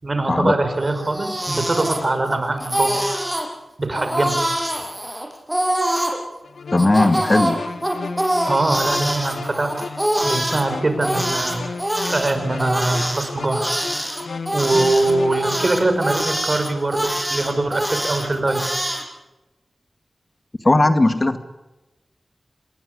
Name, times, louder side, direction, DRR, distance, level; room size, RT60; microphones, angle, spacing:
voice 1, 0.0-3.0 3.8-4.4 8.5-10.0 10.2-11.8 12.1-13.8 14.5-18.6, right 2 dB, 40° right, 8 dB, 5.8 m, -22 dB
Crying sobbing, 0.9-2.3 2.6-3.5 3.9-6.2 6.8-10.6 11.0-19.0, right 1 dB, 10° right, 7.4 m, -24 dB
sound 1, 6.4-15.7, left 4 dB, 85° left, 1.7 m, -34 dB
voice 2, 6.7-7.6 20.6-21.4, left 2 dB, 35° left, 8 dB, 1.9 m, -17 dB
27.0 x 21.0 x 9.9 m, 1.1 s
wide cardioid pair, 75°, 0 cm